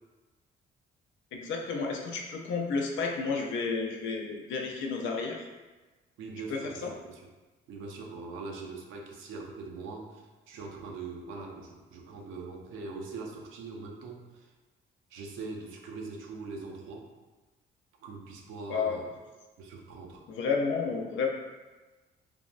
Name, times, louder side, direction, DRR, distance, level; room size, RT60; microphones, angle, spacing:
voice 1, 1.3-5.4 6.5-6.9 18.7-19.0 20.3-21.3, left 4 dB, 75° left, 1 dB, 0.5 m, -31 dB
voice 2, 6.2-7.2 7.7-14.5 15.1-17.1 18.0-19.1 19.6-20.2, right 4 dB, 90° right, 0 dB, 0.5 m, -42 dB
3.4 x 2.0 x 2.4 m, 1.2 s
cardioid pair, 90°, 20 cm